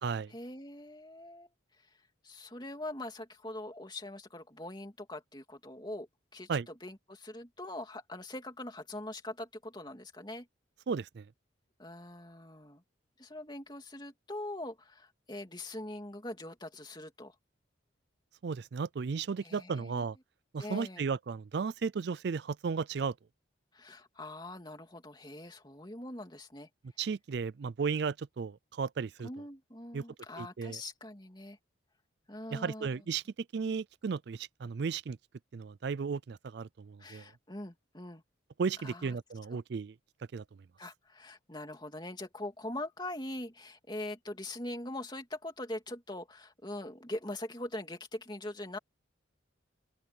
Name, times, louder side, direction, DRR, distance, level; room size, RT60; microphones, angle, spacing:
voice 1, 0.3-1.5 2.2-10.5 11.8-12.8 13.2-17.3 19.4-20.0 20.6-21.0 23.7-26.7 29.2-31.6 32.3-32.9 37.0-38.2 38.8-39.2 39.5-39.6 40.8-48.8, left 1 dB, 20° left, 3.0 m, -42 dB
voice 2, 10.9-11.3 18.4-20.2 20.5-23.1 27.0-29.3 29.9-30.0 30.4-30.8 32.5-33.2 33.5-35.2 35.5-37.2 38.6-39.9 40.3-40.4, right 5 dB, 55° right, 0.4 m, -34 dB
open air
head